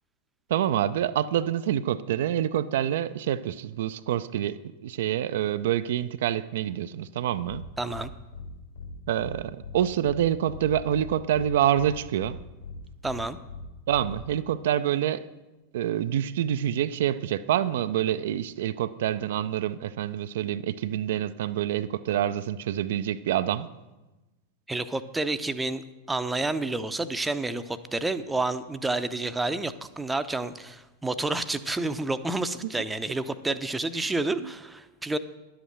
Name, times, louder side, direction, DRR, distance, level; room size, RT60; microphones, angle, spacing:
voice 1, 0.5-7.6 9.1-12.4 13.9-15.3 15.7-23.7 34.0-34.1 34.4-34.5, right 11 dB, 55° right, 11 dB, 0.4 m, -27 dB
sound 1, 7.5-7.6 7.9-8.0 8.3-8.5 8.7-8.9 9.2-9.3 9.6-9.7 10.0-10.2 10.5-11.0 11.3-11.5 11.7-11.9 12.2-12.3 12.6-12.7 13.0-13.2 13.5-13.6 13.9-14.1, left 6 dB, 65° left, 4.0 m, -40 dB
voice 2, 7.8-8.1 13.0-13.4 24.7-35.2, right 2 dB, 10° right, 11 dB, 0.6 m, -29 dB
11.5 x 8.0 x 6.3 m, 1.1 s
figure-of-eight pair, 90°, 0 cm